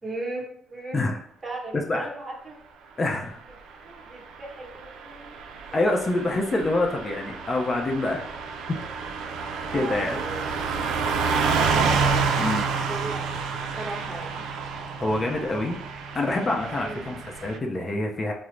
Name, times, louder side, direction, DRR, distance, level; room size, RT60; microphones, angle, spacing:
voice 1, 0.0-1.0 1.4-2.6 3.8-5.4 5.6-5.9 6.7-6.8 9.6-12.0 12.9-13.3 13.8-14.4 16.8-17.0, right 2 dB, 30° right, -1 dB, 1.0 m, -38 dB
voice 2, 1.7-2.1 3.0-3.4 5.7-8.2 8.7-8.8 9.7-10.2 12.4-12.7 15.0-15.8 16.1-18.3, left 2 dB, 35° left, 1 dB, 0.5 m, -26 dB
Car passing by / Truck, 4.6-17.6, right 5 dB, 90° right, 0.3 m, -29 dB
3.7 x 2.0 x 3.1 m, 0.70 s
cardioid pair, 90°, 0 cm